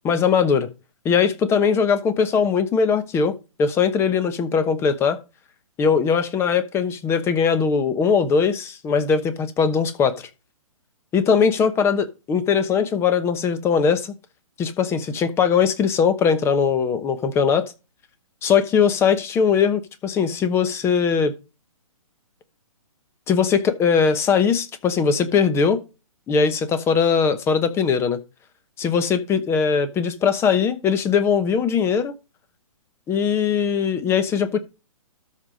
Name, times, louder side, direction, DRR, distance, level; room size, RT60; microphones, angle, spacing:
voice 1, 0.0-0.7 1.0-3.3 3.6-5.2 5.8-10.3 11.1-14.1 14.6-17.7 18.4-21.4 23.3-25.8 26.3-28.2 28.8-32.1 33.1-34.6, left 6 dB, 15° left, 1.0 m, -20 dB
13.0 x 4.9 x 5.2 m
hypercardioid pair, 140°, 18 cm